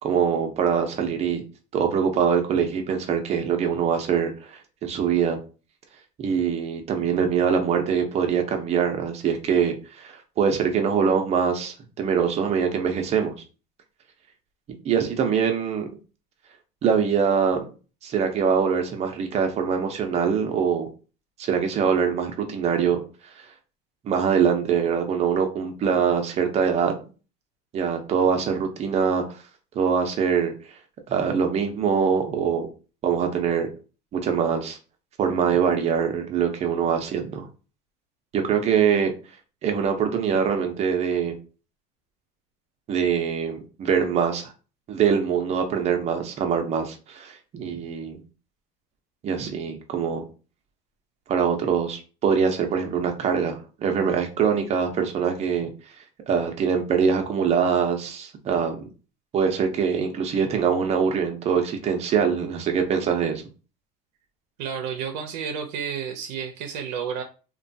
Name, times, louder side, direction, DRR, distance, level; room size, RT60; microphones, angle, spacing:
voice 1, 0.0-1.4 1.7-5.4 6.2-13.4 14.8-15.9 16.8-17.7 18.0-20.9 21.4-23.0 24.0-27.1 27.7-29.2 29.8-30.5 31.1-32.7 33.0-33.7 34.1-34.8 35.2-37.5 38.3-39.1 39.6-41.4 42.9-44.5 44.9-48.2 49.2-50.2 51.3-55.7 56.3-58.9 59.3-63.4, right 7 dB, 30° right, 0.6 m, -23 dB
voice 2, 64.6-67.2, right 7 dB, 85° right, 0.5 m, -31 dB
2.9 x 2.2 x 2.6 m
cardioid pair, 145°, 21 cm